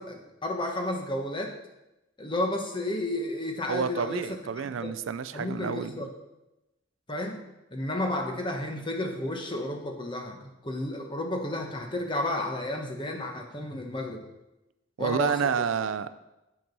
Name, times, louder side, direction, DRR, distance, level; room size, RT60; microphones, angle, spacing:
voice 1, 0.0-1.5 2.2-4.2 4.8-5.0 5.3-6.1 7.1-7.4 7.7-14.2 15.0-15.7, left 1 dB, 25° left, 3 dB, 1.1 m, -32 dB
voice 2, 3.7-6.1 15.0-16.1, right 6 dB, 65° right, 13 dB, 0.4 m, -29 dB
8.6 x 6.0 x 5.3 m, 0.95 s
head